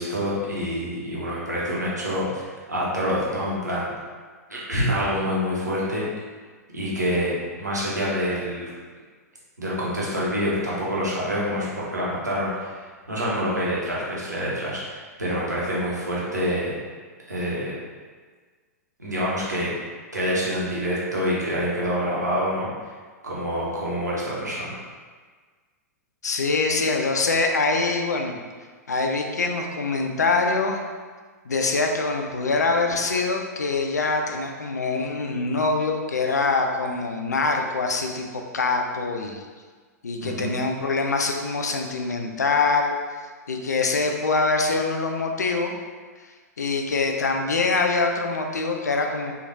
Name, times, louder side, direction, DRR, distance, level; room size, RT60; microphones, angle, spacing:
voice 1, 0.0-3.9 4.5-6.1 6.7-7.3 7.6-8.7 9.6-16.8 17.3-17.7 19.0-19.7 20.1-22.7 23.2-24.8 40.2-40.5, equal, 90° right, -6 dB, 0.9 m, -26 dB
voice 2, 26.2-28.4 28.9-30.8 31.5-38.3 38.5-39.4 40.0-42.9 43.5-45.7 46.6-49.3, left 3 dB, 80° left, 3 dB, 0.4 m, -24 dB
3.1 x 2.4 x 2.6 m, 1.5 s
figure-of-eight pair, 100°, 9 cm